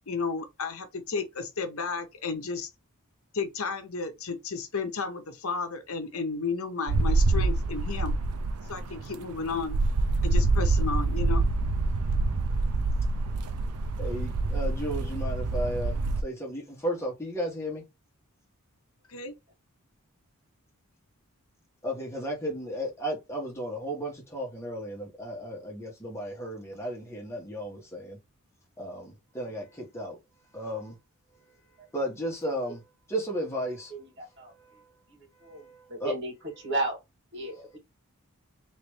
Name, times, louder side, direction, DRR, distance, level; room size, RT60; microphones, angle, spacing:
voice 1, 0.0-2.7 3.3-8.2 8.7-9.8 10.2-11.5 19.1-19.3, left 4 dB, 70° left, 0.9 m, -33 dB
sound 1, 6.9-16.2, right 3 dB, 90° right, 0.5 m, -26 dB
voice 2, 14.0-17.8 21.8-28.2 28.8-30.2 30.5-31.0 31.9-32.8 33.1-33.9 34.6-34.7 35.4-36.1, equal, 10° left, 1.4 m, -34 dB
voice 3, 33.9-34.5 35.1-37.0 37.3-37.8, right 2 dB, 50° right, 1.8 m, -34 dB
3.2 x 3.1 x 3.2 m
head